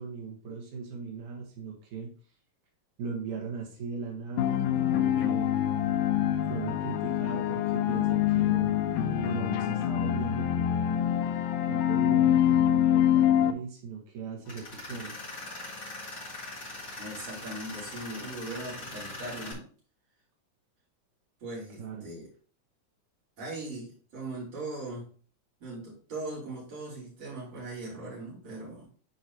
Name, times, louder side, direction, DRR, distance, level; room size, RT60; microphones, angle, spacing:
voice 1, 0.0-2.1 3.0-5.5 6.5-8.7 9.2-11.1 11.7-15.2 21.8-22.1, right 5 dB, 80° right, 0 dB, 3.0 m, -38 dB
sound 1, 4.4-13.5, left 11 dB, 90° left, 2.2 m, -25 dB
Tools, 14.4-19.5, left 2 dB, 25° left, 3.3 m, -41 dB
voice 2, 17.0-19.7 21.4-22.2 23.4-25.1 25.6-28.9, right 2 dB, 55° right, -6 dB, 5.0 m, -39 dB
10.0 x 4.9 x 2.9 m, 0.41 s
omnidirectional pair, 3.5 m